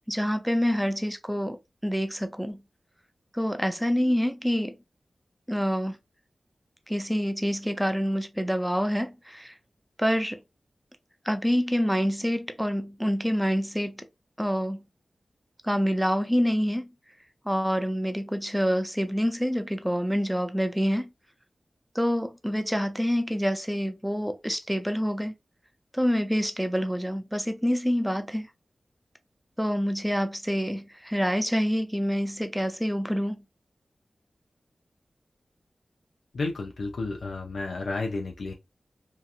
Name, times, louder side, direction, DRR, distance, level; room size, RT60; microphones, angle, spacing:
voice 1, 0.1-2.6 3.3-4.8 5.5-6.0 6.9-9.5 10.0-10.4 11.2-14.1 14.4-14.8 15.6-16.9 17.5-21.1 21.9-25.3 25.9-28.5 29.6-33.4, equal, 5° right, 0.4 m, -27 dB
voice 2, 36.3-38.5, left 3 dB, 90° left, 0.5 m, -31 dB
2.8 x 2.4 x 2.4 m
wide cardioid pair, 95°, 0 cm